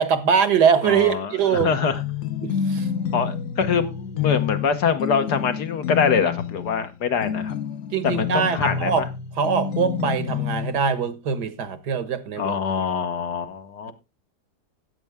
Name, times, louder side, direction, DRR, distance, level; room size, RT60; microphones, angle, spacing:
voice 1, 0.0-1.7 2.4-2.9 7.9-9.1 9.4-12.6, right 7 dB, 75° right, 1.9 m, -22 dB
voice 2, 0.8-2.0 3.1-7.5 8.0-9.0 12.4-13.9, left 6 dB, 75° left, 1.8 m, -24 dB
sound 1, 1.9-10.8, left 8 dB, 55° left, 1.1 m, -28 dB
13.0 x 9.0 x 3.5 m
omnidirectional pair, 1.8 m